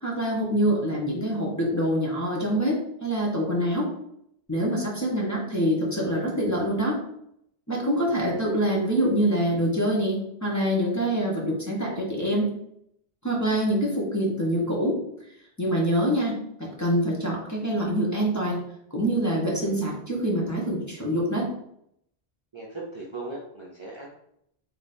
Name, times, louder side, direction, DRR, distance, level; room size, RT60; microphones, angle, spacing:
voice 1, 0.0-3.9 4.5-7.0 7.7-12.5 13.2-15.0 15.6-18.6 18.9-21.5, equal, 15° left, -4 dB, 1.2 m, -25 dB
voice 2, 8.0-8.6 19.5-19.8 22.5-24.1, right 2 dB, 30° right, -4 dB, 0.7 m, -39 dB
3.7 x 3.3 x 4.3 m, 0.74 s
omnidirectional pair, 1.0 m